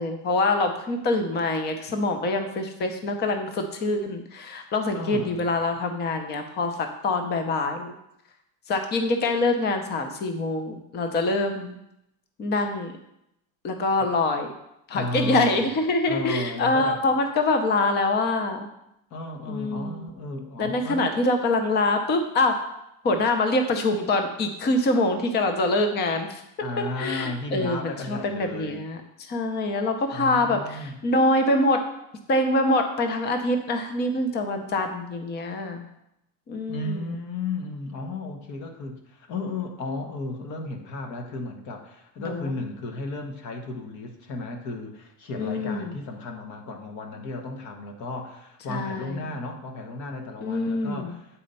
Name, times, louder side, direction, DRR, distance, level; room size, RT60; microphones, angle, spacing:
voice 1, 0.0-7.9 8.7-11.8 12.4-12.9 13.6-14.5 14.9-18.7 19.4-20.1 20.6-22.6 23.0-26.4 27.0-29.0 29.3-31.8 32.3-35.8 36.5-37.0 42.2-42.5 45.3-45.9 48.7-49.3 50.4-51.1, left 2 dB, 25° left, 6 dB, 0.7 m, -25 dB
voice 2, 4.9-5.4 14.9-15.7 16.1-17.0 19.1-21.2 26.6-28.8 30.1-31.0 36.7-51.4, left 2 dB, 45° left, 4 dB, 1.2 m, -34 dB
8.4 x 4.3 x 5.4 m, 0.81 s
cardioid pair, 160°, 39 cm